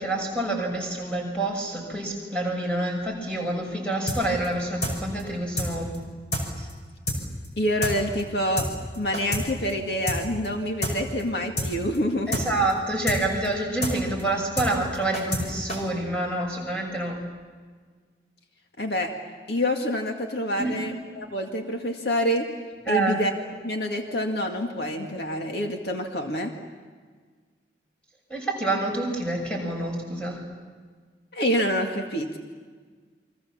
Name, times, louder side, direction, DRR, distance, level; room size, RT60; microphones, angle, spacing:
voice 1, 0.0-6.0 6.6-6.7 12.3-17.2 20.6-20.9 21.2-21.3 22.8-23.2 28.3-30.4, right 2 dB, 5° left, -1 dB, 6.7 m, -27 dB
sound 1, 4.1-4.2 4.4-4.5 4.8-4.9 5.2-5.3 5.6-5.7 5.9-6.0 6.3-6.4 6.7-6.8 7.1-7.2 7.4-7.5 7.8-7.9 8.2-8.3 8.6-8.7 8.9-9.4 9.7-9.8 10.1-10.2 10.4-10.5 10.8-10.9 11.2-11.3 11.6-11.7 11.9-12.0 12.3-12.4 12.7-12.8 13.1-13.2 13.4-13.5 13.8-13.9 14.2-14.3 14.6-14.7 14.9-15.4 15.7-15.8, left 1 dB, 40° left, 5.7 m, -27 dB
voice 2, 7.6-8.7 9.0-12.4 18.8-19.1 19.5-22.5 22.9-23.3 23.6-26.5 31.3-32.4, equal, 70° left, 3 dB, 2.1 m, -27 dB
29.5 x 24.0 x 7.3 m, 1.5 s
head